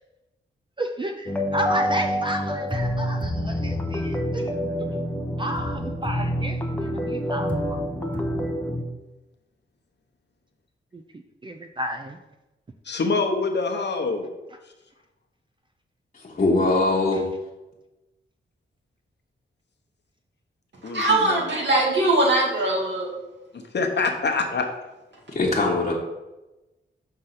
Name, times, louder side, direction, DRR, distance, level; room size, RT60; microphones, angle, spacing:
voice 1, 0.8-4.5 5.4-7.8 10.9-11.0 11.4-12.2 17.1-17.2, right 1 dB, 25° right, 5 dB, 0.4 m, -32 dB
sound 1, 1.3-8.8, equal, 5° left, 0.8 m, -27 dB
voice 2, 12.9-14.3 20.8-21.4 23.5-24.7, left 4 dB, 60° left, 3 dB, 0.9 m, -25 dB
voice 3, 16.1-17.2 25.3-25.9, left 2 dB, 35° left, -5 dB, 1.2 m, -22 dB
voice 4, 20.8-23.1, right 2 dB, 60° right, -2 dB, 2.1 m, -21 dB
6.5 x 3.9 x 5.7 m, 1.0 s
wide cardioid pair, 105°, 20 cm